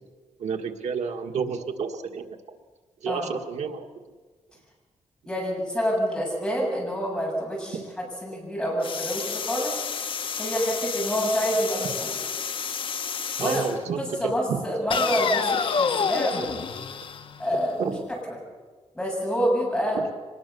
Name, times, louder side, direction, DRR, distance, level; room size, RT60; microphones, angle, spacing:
voice 1, 0.4-2.6 3.0-3.9 13.4-14.6 17.8-18.1 19.9-20.0, right 6 dB, 85° right, 4 dB, 1.8 m, -30 dB
voice 2, 5.3-9.8 10.4-12.2 13.4-13.6 14.0-16.6 17.4-18.4 18.9-20.0, equal, 5° left, -3 dB, 7.8 m, -27 dB
sound 1, 8.8-13.8 14.9-17.8, left 6 dB, 50° left, 1.0 m, -29 dB
24.0 x 20.5 x 7.0 m, 1.4 s
wide cardioid pair, 150°, 11 cm